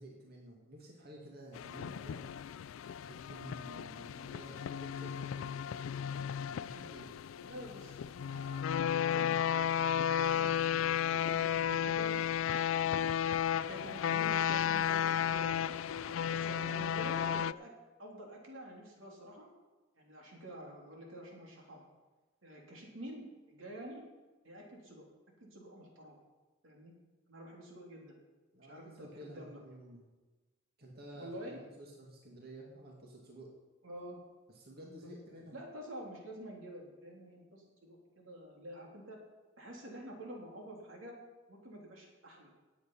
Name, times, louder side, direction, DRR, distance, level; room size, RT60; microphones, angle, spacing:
voice 1, 0.0-2.3 3.1-5.6 6.6-7.1 28.5-30.1 30.8-33.5 34.5-35.6, right 1 dB, 55° right, -1 dB, 2.2 m, -51 dB
sound 1, 1.5-17.5, left 9 dB, 90° left, 0.3 m, -33 dB
voice 2, 7.4-12.2 13.7-17.7 18.0-19.5 20.0-21.8 22.4-24.0 24.4-25.0 25.4-26.2 26.6-26.9 27.3-28.2 28.6-29.6 31.1-31.6 33.8-34.2 35.0-35.1 35.5-39.2 39.6-41.2 41.5-42.5, right 1 dB, 90° right, -1 dB, 3.3 m, -48 dB
17.5 x 8.3 x 5.6 m, 1.2 s
head